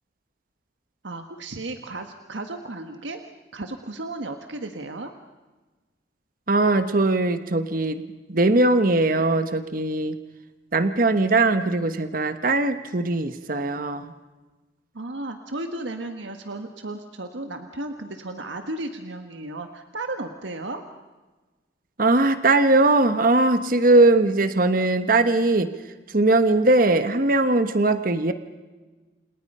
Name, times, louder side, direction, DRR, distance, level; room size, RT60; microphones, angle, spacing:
voice 1, 1.0-3.2 3.5-5.1 14.9-20.8, right 2 dB, 85° right, 6 dB, 1.5 m, -34 dB
voice 2, 6.5-8.0 8.3-10.2 10.7-14.1 22.0-25.7 26.1-28.3, right 2 dB, 50° right, 9 dB, 1.2 m, -20 dB
29.5 x 28.0 x 5.6 m, 1.3 s
head